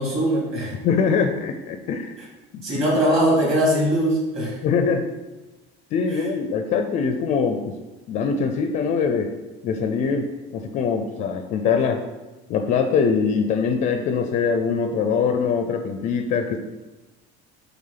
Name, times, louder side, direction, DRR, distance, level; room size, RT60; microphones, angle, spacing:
voice 1, 0.0-0.8 2.6-4.6 6.1-6.3, equal, 30° right, -4 dB, 2.5 m, -21 dB
voice 2, 0.8-2.1 2.5-2.8 4.6-5.0 5.9-7.8 8.1-9.3 9.6-12.0 12.5-16.6, left 5 dB, 35° left, 6 dB, 0.5 m, -23 dB
8.6 x 3.5 x 5.7 m, 1.1 s
cardioid pair, 180°, 21 cm